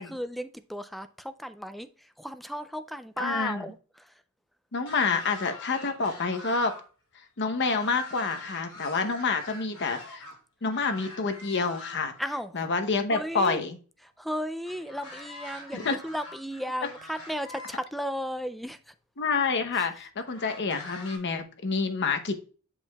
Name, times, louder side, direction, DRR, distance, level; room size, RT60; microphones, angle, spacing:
voice 1, 0.0-4.1 12.2-12.5 13.1-13.7 14.2-18.9 19.8-19.9, equal, ahead, 0.3 m, -35 dB
voice 2, 3.2-3.7 4.7-6.7 7.4-10.3 10.6-12.1 12.5-13.8 15.7-16.0 19.2-22.4, left 4 dB, 55° left, 0.8 m, -28 dB
sound 1, 4.8-6.8 7.1-10.3 10.7-12.2 14.6-17.8 18.7-18.8 20.2-21.2, left 1 dB, 75° left, 3.5 m, -44 dB
7.8 x 6.4 x 2.3 m
head